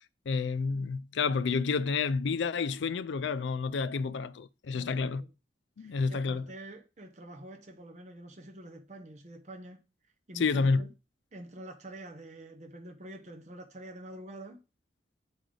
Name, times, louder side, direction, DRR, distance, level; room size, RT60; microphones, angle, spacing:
voice 1, 0.3-5.2 5.8-6.5 10.3-10.8, left 4 dB, 75° left, 0.4 m, -29 dB
voice 2, 4.7-5.3 5.8-9.8 10.3-10.9 11.3-14.6, right 1 dB, 40° right, 0.8 m, -47 dB
9.7 x 3.4 x 3.8 m
head